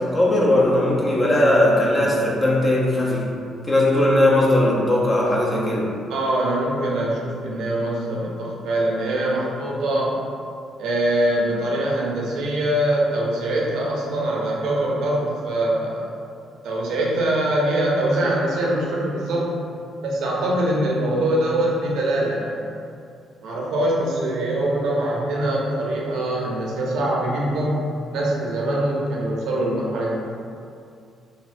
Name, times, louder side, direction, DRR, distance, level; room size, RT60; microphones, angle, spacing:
voice 1, 0.0-3.3 3.7-5.9, left 1 dB, 25° left, -4 dB, 0.7 m, -18 dB
voice 2, 6.1-10.2 10.8-16.1 16.6-19.6 20.0-22.7 23.4-27.8 28.1-30.2, right 1 dB, 80° right, -3 dB, 0.6 m, -23 dB
4.0 x 2.2 x 2.5 m, 2.4 s
cardioid pair, 90°, 0 cm